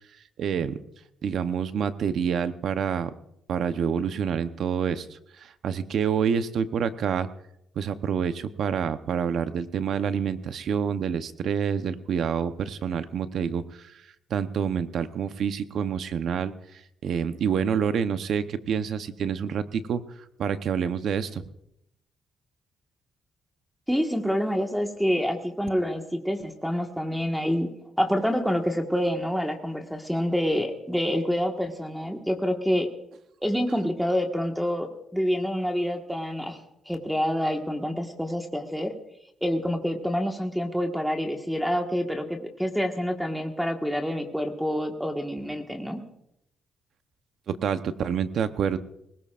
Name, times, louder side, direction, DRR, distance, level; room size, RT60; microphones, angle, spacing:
voice 1, 0.4-0.8 1.2-3.1 3.5-7.3 7.8-13.9 14.3-16.5 17.0-20.0 20.4-21.4 47.5-48.8, right 7 dB, 65° right, 11 dB, 0.9 m, -27 dB
voice 2, 23.9-27.7 28.0-32.9 33.4-36.6 36.8-38.9 39.4-46.0, equal, ahead, 3 dB, 1.6 m, -27 dB
20.5 x 19.0 x 2.5 m, 0.80 s
cardioid pair, 90°, 0 cm